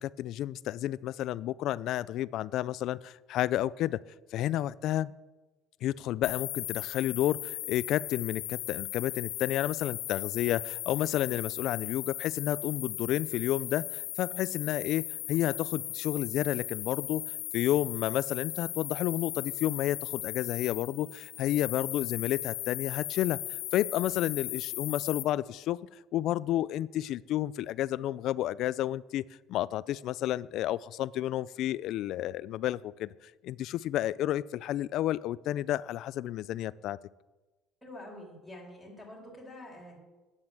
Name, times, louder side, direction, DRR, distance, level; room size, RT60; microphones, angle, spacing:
voice 1, 0.0-4.0 4.3-5.1 5.8-17.2 17.5-23.4 23.7-25.8 26.1-29.2 29.5-33.1 33.4-37.0, left 13 dB, 55° left, 20 dB, 0.3 m, -31 dB
sound 1, 6.2-25.2, left 17 dB, 80° left, 0.7 m, -37 dB
voice 2, 37.8-40.0, left 1 dB, ahead, -2 dB, 3.2 m, -47 dB
9.0 x 7.7 x 7.5 m, 1.2 s
cardioid pair, 150°, 0 cm